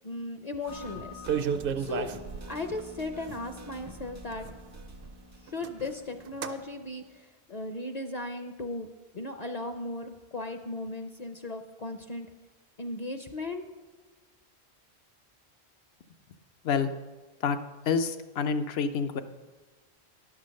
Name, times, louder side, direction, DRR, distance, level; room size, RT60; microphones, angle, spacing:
voice 1, 0.0-1.3 1.8-2.1 2.5-4.5 5.5-8.9 9.1-12.3 12.8-13.6, left 2 dB, 45° left, 6 dB, 0.6 m, -36 dB
sound 1, 0.7-7.2, left 2 dB, 25° right, 0.4 m, -48 dB
sound 2, 0.7-0.8 1.0-2.8 3.5-3.6 3.8-5.1 5.5-5.9 6.3-6.6, right 7 dB, 65° right, 0.7 m, -33 dB
voice 2, 17.9-19.2, left 6 dB, 75° left, 9 dB, 0.9 m, -27 dB
11.0 x 6.2 x 6.4 m, 1.3 s
omnidirectional pair, 1.1 m